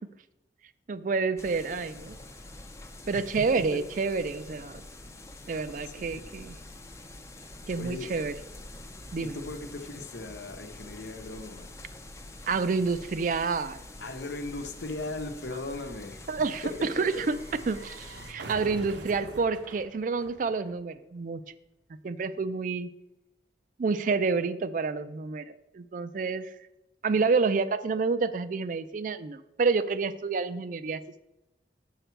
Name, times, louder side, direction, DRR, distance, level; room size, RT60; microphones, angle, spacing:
voice 1, 0.9-2.2 3.1-4.8 5.5-6.6 7.7-8.3 9.1-9.4 12.5-13.8 16.3-17.4 17.7-21.4 22.0-22.9 23.8-26.5 27.0-31.0, right 4 dB, 45° right, 12 dB, 0.4 m, -29 dB
sound 1, 1.4-18.3, left 2 dB, 15° left, 0.5 m, -46 dB
voice 2, 5.8-6.3 7.8-8.1 9.2-11.7 14.0-16.3 16.6-17.2, left 2 dB, 75° left, 6 dB, 0.9 m, -38 dB
sound 2, 10.9-21.2 21.4-21.5, right 2 dB, 80° right, 0.9 m, -47 dB
7.0 x 6.5 x 4.5 m, 0.94 s
head